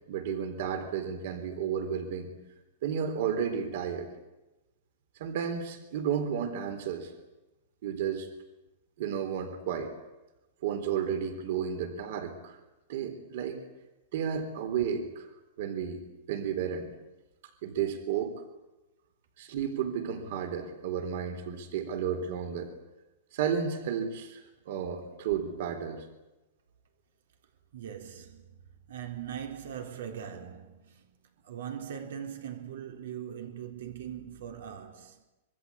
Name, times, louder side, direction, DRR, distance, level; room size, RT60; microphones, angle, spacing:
voice 1, 0.1-2.3 2.8-4.1 5.2-7.1 7.8-8.3 9.0-9.9 10.6-12.6 12.9-13.6 14.1-15.3 15.6-16.9 17.6-18.4 19.4-22.7 23.3-26.1, right 8 dB, 50° right, 3.8 m, -32 dB
voice 2, 27.7-28.6 28.9-35.2, right 9 dB, 75° right, 3.9 m, -41 dB
25.5 x 23.0 x 8.6 m
supercardioid pair, 170°, 0 cm